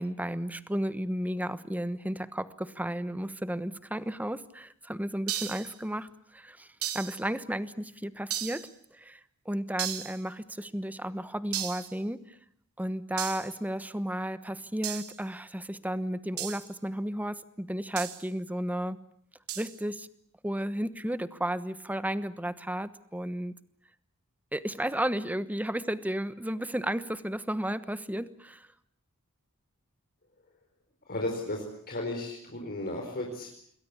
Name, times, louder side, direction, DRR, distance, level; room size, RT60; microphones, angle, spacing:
voice 1, 0.0-6.1 6.3-6.7 6.9-8.7 9.0-9.2 9.4-12.2 12.8-19.0 19.6-20.1 20.4-23.5 24.5-28.7, right 1 dB, 5° right, 14 dB, 1.1 m, -33 dB
sound 1, 5.3-5.7 6.8-7.2 8.3-8.7 9.8-10.2 11.5-11.9 13.2-13.5 14.8-15.2 16.4-16.7 18.0-18.2 19.5-19.8, right 11 dB, 80° right, 2.4 m, -35 dB
voice 2, 31.1-33.5, left 1 dB, 45° left, 1 dB, 4.9 m, -34 dB
27.5 x 22.0 x 8.6 m, 0.65 s
head